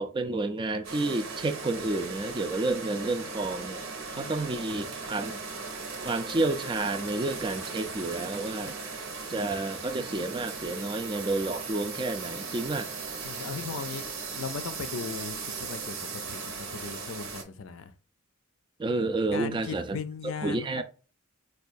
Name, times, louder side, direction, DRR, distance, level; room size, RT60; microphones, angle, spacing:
voice 1, 0.0-3.9 4.1-5.4 6.0-8.8 9.3-12.9 18.8-19.8 20.4-20.8, right 2 dB, 25° right, 0.4 m, -30 dB
sound 1, 0.8-17.4, right 4 dB, 75° right, 0.9 m, -38 dB
voice 2, 4.1-4.6 13.2-14.0 14.4-16.0 16.3-17.9 19.3-20.8, left 5 dB, 75° left, 0.5 m, -38 dB
4.6 x 2.3 x 2.5 m
head